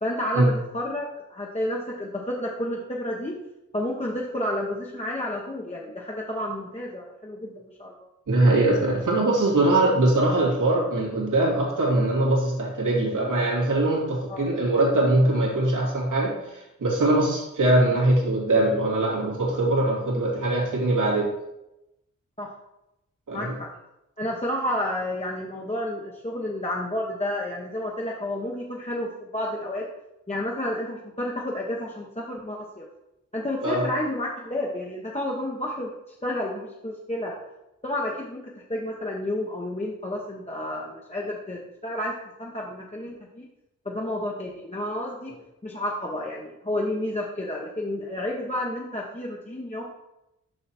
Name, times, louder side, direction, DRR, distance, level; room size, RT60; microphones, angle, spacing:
voice 1, 0.0-3.4 3.7-7.9 14.3-14.5 22.4-22.5 23.3-23.7 24.2-29.9 30.3-32.9 33.3-35.9 36.2-37.4 37.8-42.1 42.4-43.5 43.8-45.3 45.6-49.8, left 1 dB, 20° left, -3 dB, 1.1 m, -30 dB
voice 2, 8.3-21.3 23.3-23.5 33.6-33.8, right 2 dB, 80° right, -3 dB, 2.5 m, -22 dB
6.8 x 5.7 x 4.3 m, 0.90 s
cardioid pair, 65°, 30 cm